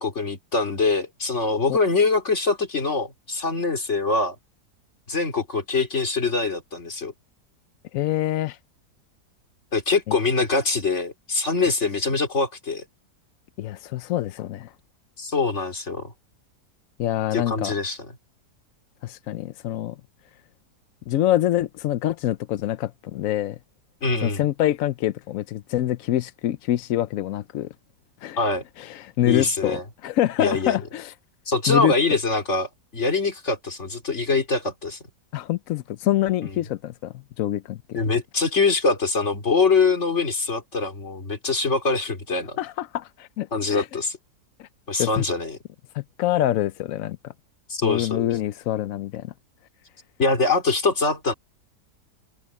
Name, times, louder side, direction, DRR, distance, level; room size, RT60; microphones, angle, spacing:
voice 1, 0.0-4.3 5.1-7.1 9.7-12.8 15.2-16.1 17.3-18.0 24.0-24.4 28.4-28.6 29.3-29.8 30.4-30.8 31.5-35.0 36.4-36.5 37.9-42.6 43.5-44.2 44.9-45.6 47.7-48.3 50.2-51.3, left 3 dB, 40° left, 3.2 m, -23 dB
voice 2, 7.9-8.6 10.1-10.2 13.6-14.7 17.0-17.7 19.0-20.0 21.1-23.6 24.2-27.7 28.2-28.4 28.8-31.1 31.7-31.9 35.3-38.0 42.6-43.9 44.6-44.7 45.0-45.2 45.9-47.3 47.8-49.3, left 13 dB, 65° left, 0.8 m, -25 dB
omnidirectional pair, 1.8 m